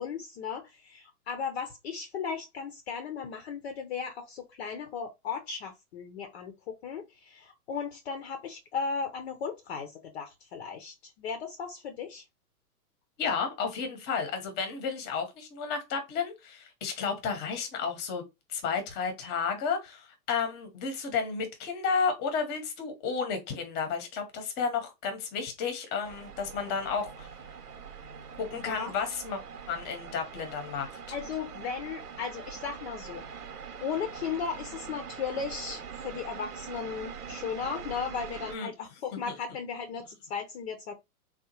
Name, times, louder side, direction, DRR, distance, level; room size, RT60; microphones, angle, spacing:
voice 1, 0.0-12.2 28.5-28.9 31.1-33.2 33.8-40.9, left 6 dB, 45° left, 0.7 m, -36 dB
voice 2, 13.2-18.2 18.5-27.3 28.4-29.4 29.7-30.9 38.5-38.7 39.3-39.4, left 5 dB, 20° left, 0.9 m, -32 dB
sound 1, 26.0-38.6, right 6 dB, 80° right, 1.1 m, -43 dB
3.6 x 2.3 x 2.9 m
figure-of-eight pair, 120°, 45 cm